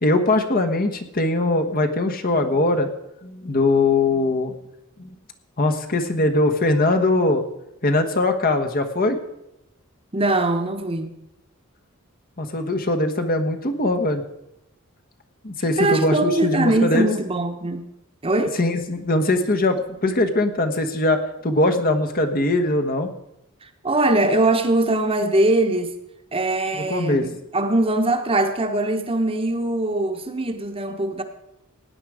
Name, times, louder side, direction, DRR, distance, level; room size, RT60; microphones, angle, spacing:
voice 1, 0.0-2.9 3.2-4.5 5.0-5.2 5.6-7.4 7.8-9.2 12.4-14.2 15.4-17.1 18.6-23.1 26.7-27.3, left 2 dB, 40° left, 5 dB, 1.2 m, -21 dB
voice 2, 10.1-11.1 15.8-17.8 18.2-18.6 23.8-26.0 26.3-31.2, right 2 dB, 25° right, 6 dB, 1.1 m, -21 dB
16.5 x 9.7 x 4.9 m, 0.88 s
head